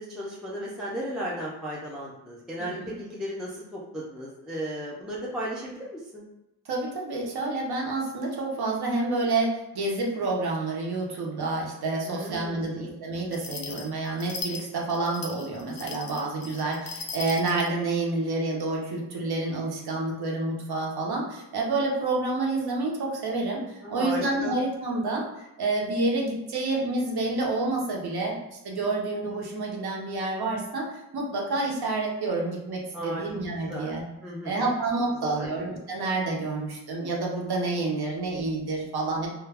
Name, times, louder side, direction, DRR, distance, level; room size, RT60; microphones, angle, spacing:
voice 1, 0.0-6.2 12.0-12.9 23.8-24.5 32.9-33.2 33.7-33.9 34.2-34.7 35.2-35.5, equal, ahead, -5 dB, 0.3 m, -35 dB
voice 2, 2.6-2.9 6.7-28.4 28.6-34.0 34.4-39.3, right 2 dB, 65° right, -1 dB, 0.7 m, -29 dB
sound 1, 13.3-17.7, left 4 dB, 85° left, 0.5 m, -38 dB
2.2 x 2.2 x 3.3 m, 0.93 s
wide cardioid pair, 150°, 41 cm